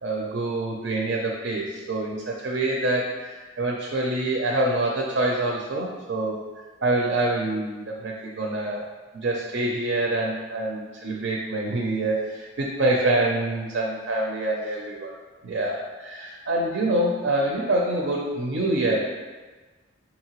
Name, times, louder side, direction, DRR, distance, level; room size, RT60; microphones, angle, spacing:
voice 1, 0.0-6.4 6.8-8.9 9.1-15.1 15.4-19.1, right 2 dB, 70° right, -1 dB, 0.5 m, -26 dB
5.0 x 2.8 x 2.9 m, 1.3 s
head